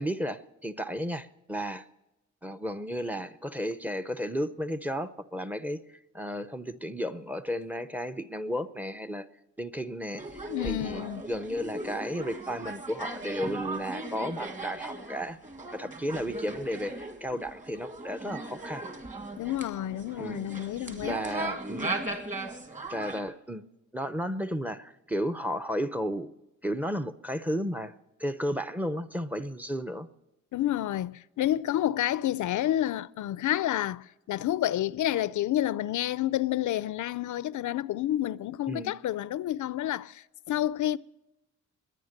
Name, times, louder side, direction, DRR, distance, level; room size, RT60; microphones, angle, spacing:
voice 1, 0.0-1.8 2.4-5.8 6.1-9.3 9.6-15.4 15.7-18.8 20.2-20.5 21.1-22.2 22.9-23.6 23.9-26.3 26.6-27.9 28.2-30.1 38.7-38.9, equal, 5° right, 0.6 m, -33 dB
sound 1, 10.2-23.2, right 2 dB, 25° right, 1.9 m, -38 dB
voice 2, 10.5-11.2 19.4-21.2 30.5-41.0, left 13 dB, 75° left, 0.5 m, -29 dB
21.5 x 9.5 x 6.6 m
wide cardioid pair, 155°, 30 cm